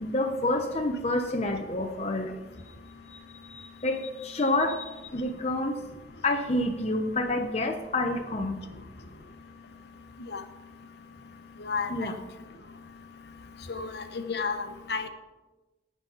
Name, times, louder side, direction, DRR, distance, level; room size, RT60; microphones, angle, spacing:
voice 1, 0.0-2.3 3.8-5.8 6.2-8.6 11.9-12.2, left 2 dB, 35° left, 3 dB, 0.8 m, -28 dB
voice 2, 13.7-15.1, left 4 dB, 60° left, 8 dB, 1.1 m, -32 dB
18.0 x 6.1 x 5.6 m, 1.1 s
head